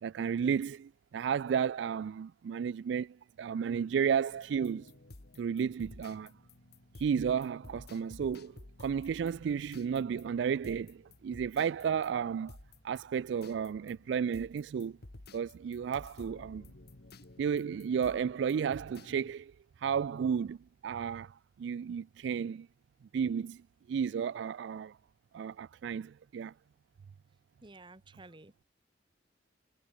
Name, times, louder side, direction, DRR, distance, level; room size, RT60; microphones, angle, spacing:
voice 1, 0.0-4.9 5.4-6.3 7.0-12.6 12.8-15.0 15.3-16.7 17.4-19.5 19.8-20.6 20.8-22.7 23.1-23.6 23.9-25.0 25.3-26.5, right 7 dB, 65° right, 0.3 m, -33 dB
sound 1, 4.3-19.4, left 2 dB, 55° left, 1.5 m, -54 dB
voice 2, 27.6-28.6, right 2 dB, 25° right, 1.2 m, -53 dB
head